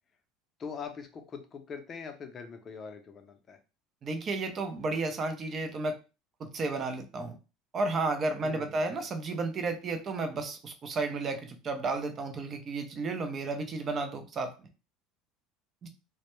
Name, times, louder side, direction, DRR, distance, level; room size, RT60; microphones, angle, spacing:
voice 1, 0.6-3.6 8.4-8.8, left 6 dB, 35° left, 5 dB, 0.5 m, -42 dB
voice 2, 4.0-6.0 6.4-7.4 7.7-14.5 15.8-15.9, right 3 dB, 35° right, 7 dB, 0.5 m, -32 dB
2.1 x 2.1 x 3.0 m, 0.31 s
supercardioid pair, 105°, 0 cm